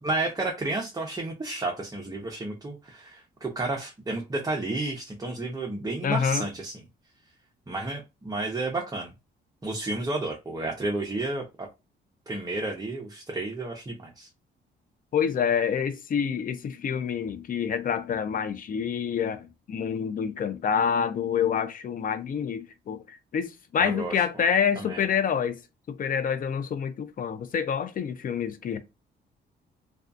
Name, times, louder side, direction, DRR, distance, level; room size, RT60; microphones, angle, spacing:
voice 1, 0.0-6.8 7.7-9.1 9.6-11.7 12.3-14.3 23.8-24.2 24.8-25.0, right 2 dB, 20° right, 0.7 m, -31 dB
voice 2, 6.0-6.4 15.1-25.6 25.9-28.8, left 7 dB, 45° left, 0.5 m, -27 dB
2.3 x 2.3 x 2.5 m
cardioid pair, 90°, 20 cm